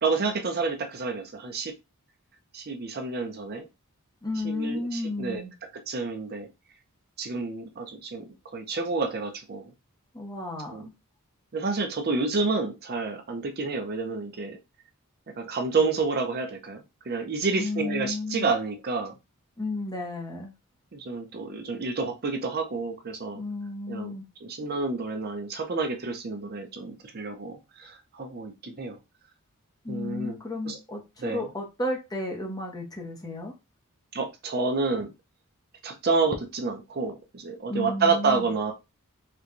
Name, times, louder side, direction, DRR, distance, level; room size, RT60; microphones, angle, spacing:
voice 1, 0.0-1.7 2.5-3.6 4.4-5.4 5.9-6.5 7.2-9.7 10.7-10.9 11.5-14.6 15.4-19.1 20.9-23.4 23.9-24.1 24.4-29.0 29.9-30.4 30.7-30.8 31.2-31.5 34.1-35.1 35.8-38.7, right 4 dB, 45° right, 5 dB, 0.5 m, -29 dB
voice 2, 4.2-5.5 10.1-10.8 17.6-18.5 19.6-20.5 23.3-24.2 29.8-33.5 37.7-38.5, left 2 dB, 15° left, 2 dB, 0.7 m, -33 dB
4.4 x 2.2 x 2.5 m, 0.24 s
head